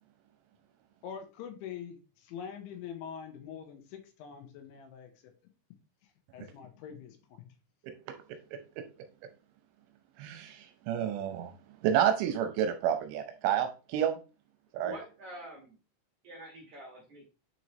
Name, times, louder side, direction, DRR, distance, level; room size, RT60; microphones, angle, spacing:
voice 1, 1.0-5.3 6.3-7.5, left 8 dB, 75° left, 5 dB, 3.2 m, -44 dB
voice 2, 10.2-11.5 11.8-14.2 14.7-14.9, right 9 dB, 80° right, 7 dB, 3.0 m, -29 dB
voice 3, 14.8-15.8 16.2-17.3, right 1 dB, 55° right, -3 dB, 2.1 m, -46 dB
9.4 x 4.6 x 3.0 m, 0.33 s
omnidirectional pair, 5.7 m